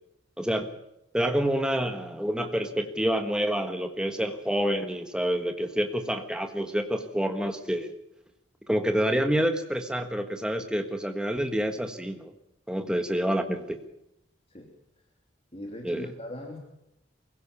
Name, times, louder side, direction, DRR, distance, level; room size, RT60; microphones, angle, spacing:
voice 1, 0.4-0.7 1.1-7.9 8.7-12.3 12.7-13.8 15.8-16.1, equal, 5° right, 6 dB, 1.4 m, -28 dB
voice 2, 15.5-16.6, left 1 dB, 30° left, 1 dB, 3.1 m, -40 dB
23.5 x 16.5 x 7.1 m, 0.85 s
head